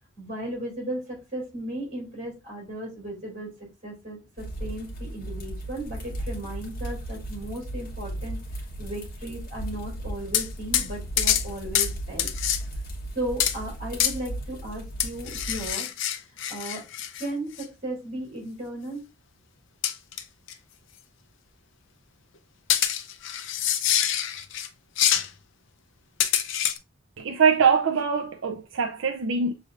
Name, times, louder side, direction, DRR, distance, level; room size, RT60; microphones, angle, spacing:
voice 1, 0.2-3.5 3.8-12.3 13.1-15.9 16.5-16.8 17.2-19.0, right 1 dB, 40° right, 2.8 m, -35 dB
sound 1, 4.4-15.7, right 1 dB, 45° left, 1.3 m, -36 dB
sound 2, 10.3-10.5 10.7-10.9 11.2-11.5 11.7-11.9 12.2-12.6 13.4-13.6 14.0-14.2 15.0-17.3 17.6-17.7 19.8-20.2 20.5-20.6 22.7-24.7 25.0-25.3 26.2-26.8, left 10 dB, 65° left, 0.5 m, -25 dB
voice 2, 27.2-29.5, right 6 dB, 65° right, 0.5 m, -23 dB
6.4 x 3.3 x 2.4 m
head